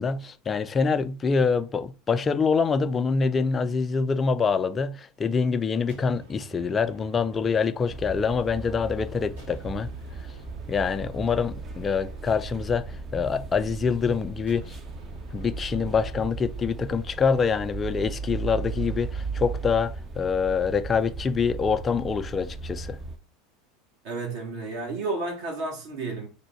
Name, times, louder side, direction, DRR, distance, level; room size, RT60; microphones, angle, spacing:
voice 1, 0.0-9.9 10.7-14.8 15.3-23.0, left 5 dB, 25° left, 0.3 m, -25 dB
sound 1, 5.9-8.9 9.4-13.6 14.5-16.6, left 1 dB, 85° right, 1.4 m, -50 dB
sound 2, 7.9-23.2, right 4 dB, 30° right, 0.6 m, -36 dB
voice 2, 24.0-26.3, right 3 dB, 60° right, 1.3 m, -31 dB
3.4 x 2.2 x 4.4 m
hypercardioid pair, 80°, 0 cm